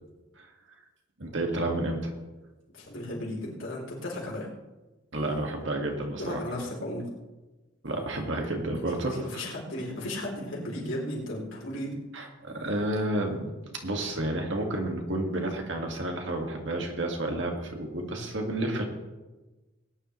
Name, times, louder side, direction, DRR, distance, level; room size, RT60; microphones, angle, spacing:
voice 1, 1.2-2.1 5.1-6.4 7.8-9.4 12.1-13.5 13.8-18.8, right 1 dB, 60° right, 2 dB, 2.0 m, -30 dB
voice 2, 2.7-4.5 6.2-7.1 8.7-12.0, left 1 dB, 70° left, -3 dB, 3.8 m, -35 dB
19.5 x 10.5 x 3.2 m, 1.1 s
head